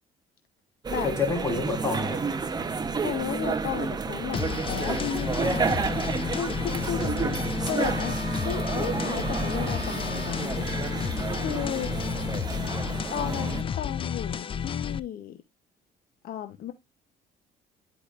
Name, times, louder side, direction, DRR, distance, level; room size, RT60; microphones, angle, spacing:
sound 1, 0.8-13.6, right 4 dB, 25° right, 0.8 m, -30 dB
voice 1, 1.0-2.2 11.7-12.6, left 4 dB, 15° left, 3.3 m, -30 dB
voice 2, 3.0-5.8 6.3-8.2 8.4-10.9 11.3-11.9 13.1-15.4 16.2-16.7, left 11 dB, 60° left, 0.8 m, -34 dB
sound 2, 4.3-15.0, left 7 dB, 30° left, 0.4 m, -32 dB
Wind instrument woodwind instrument, 7.3-10.4, right 2 dB, 45° right, 4.3 m, -41 dB
10.5 x 4.9 x 2.4 m
cardioid pair, 110°, 17 cm